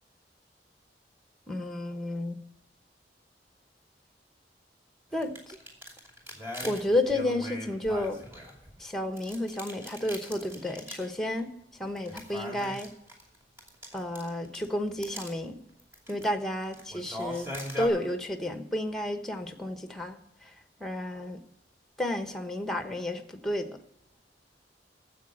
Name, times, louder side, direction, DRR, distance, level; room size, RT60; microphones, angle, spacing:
voice 1, 1.5-2.4 5.1-5.6 6.6-8.2 8.8-11.5 11.8-12.9 13.9-15.6 16.1-17.5 17.8-20.5 20.8-21.4 22.0-23.8, left 1 dB, ahead, 7 dB, 1.0 m, -31 dB
sound 1, 5.1-8.8 9.2-11.1 11.4-11.5 12.0-14.6 15.0-15.3 15.8-16.3 16.6-17.9, left 1 dB, 15° right, 2.7 m, -40 dB
13.0 x 7.8 x 6.3 m, 0.81 s
head